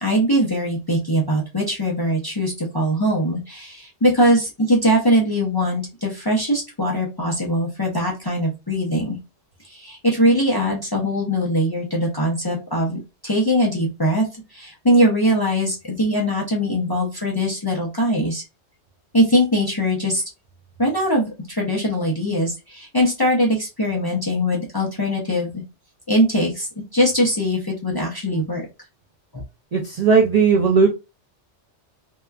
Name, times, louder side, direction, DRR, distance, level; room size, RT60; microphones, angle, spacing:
voice 1, 0.0-9.2 9.6-18.4 19.1-20.2 20.8-25.6 26.1-26.7 26.9-28.6 29.3-29.4, equal, 30° left, -2 dB, 0.4 m, -21 dB
voice 2, 29.7-30.9, right 5 dB, 75° right, 0 dB, 0.3 m, -16 dB
2.8 x 2.2 x 2.3 m, 0.26 s
omnidirectional pair, 1.2 m